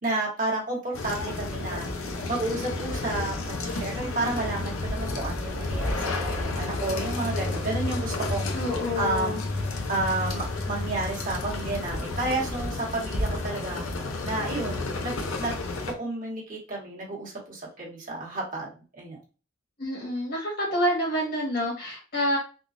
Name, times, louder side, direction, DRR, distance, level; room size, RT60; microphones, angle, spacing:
voice 1, 0.0-1.9 2.3-8.5 9.0-9.5 9.9-13.8 14.2-15.5 15.9-19.2, right 2 dB, 40° right, -4 dB, 1.3 m, -31 dB
sound 1, 0.9-15.9, left 2 dB, 85° left, 0.6 m, -32 dB
sound 2, 6.3-12.2, left 2 dB, 85° right, 0.9 m, -35 dB
voice 2, 8.5-9.4 19.8-22.4, equal, 50° left, -3 dB, 1.6 m, -27 dB
3.7 x 2.3 x 2.5 m, 0.33 s
head